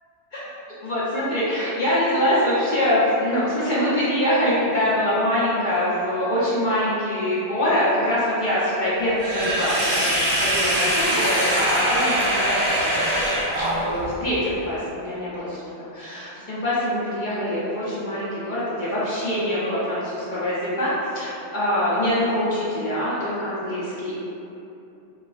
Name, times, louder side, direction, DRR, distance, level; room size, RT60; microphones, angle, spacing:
voice 1, 0.8-10.1 10.4-12.6 13.5-15.5 16.0-24.2, left 1 dB, 50° left, -9 dB, 0.7 m, -24 dB
Sink (filling or washing), 9.2-14.1, right 1 dB, 40° right, 0.7 m, -22 dB
3.9 x 2.3 x 2.3 m, 2.8 s
omnidirectional pair, 1.2 m